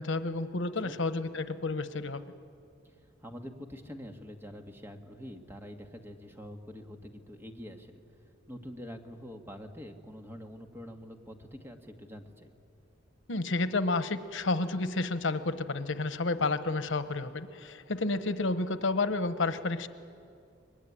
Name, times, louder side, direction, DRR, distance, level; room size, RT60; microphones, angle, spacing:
voice 1, 0.0-2.2 13.3-19.9, left 3 dB, 90° left, 11 dB, 1.1 m, -30 dB
voice 2, 3.2-8.0 8.5-12.5, equal, 15° right, 4 dB, 1.8 m, -45 dB
24.5 x 21.5 x 10.0 m, 2.4 s
head